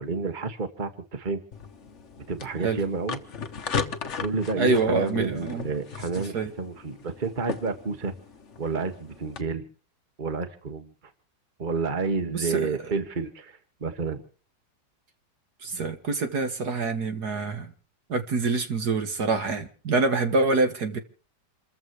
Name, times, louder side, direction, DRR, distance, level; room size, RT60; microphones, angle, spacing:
voice 1, 0.0-1.4 2.3-3.2 4.2-8.1 8.6-9.6 10.2-10.9 11.6-14.2, right 4 dB, 30° right, 1.7 m, -30 dB
sound 1, 1.5-9.4, left 5 dB, 45° left, 1.4 m, -37 dB
voice 2, 4.6-5.7 6.3-6.5 12.3-12.7 15.6-17.7 18.1-21.0, right 3 dB, 60° right, 2.3 m, -26 dB
28.5 x 15.0 x 3.1 m
omnidirectional pair, 1.9 m